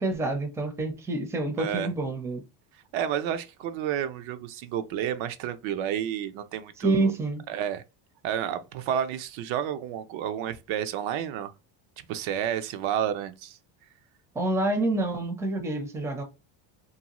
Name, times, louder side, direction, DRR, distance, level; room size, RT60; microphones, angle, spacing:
voice 1, 0.0-2.4 6.8-7.4 14.3-16.2, right 2 dB, 5° right, 0.4 m, -27 dB
voice 2, 1.6-1.9 2.9-7.1 7.5-7.8 8.2-11.5 12.1-13.6, right 9 dB, 70° right, 0.5 m, -30 dB
2.6 x 2.2 x 2.9 m
cardioid pair, 110°, 49 cm